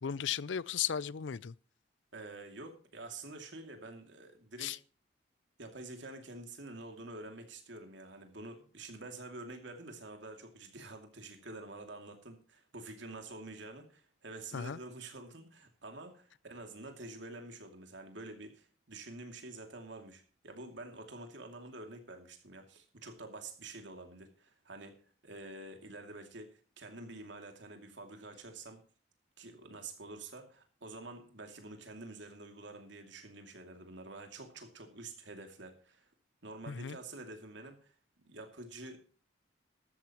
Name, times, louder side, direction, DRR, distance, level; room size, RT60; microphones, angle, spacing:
voice 1, 0.0-1.5 4.6-4.8 14.5-14.8 36.7-37.0, left 8 dB, 75° left, 0.5 m, -35 dB
voice 2, 2.1-4.8 5.6-25.0 25.2-28.8 29.4-36.1 36.4-37.9 38.2-39.0, right 2 dB, 70° right, 2.6 m, -48 dB
14.0 x 13.0 x 3.0 m
head